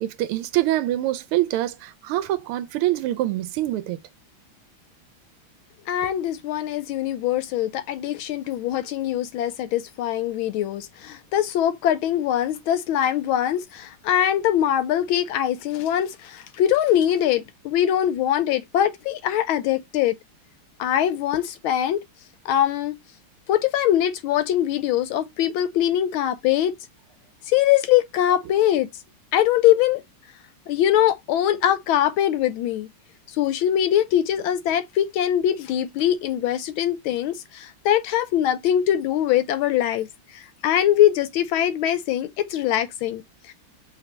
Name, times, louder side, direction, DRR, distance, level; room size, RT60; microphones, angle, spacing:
voice 1, 0.0-4.0, right 14 dB, 85° right, 1.5 m, -25 dB
voice 2, 5.9-20.2 20.8-22.0 22.4-23.0 23.5-26.7 27.5-28.9 29.3-30.0 30.7-32.9 33.4-40.1 40.3-43.2 43.5-43.6, left 11 dB, 80° left, 1.4 m, -22 dB
5.0 x 2.9 x 3.2 m
omnidirectional pair, 2.4 m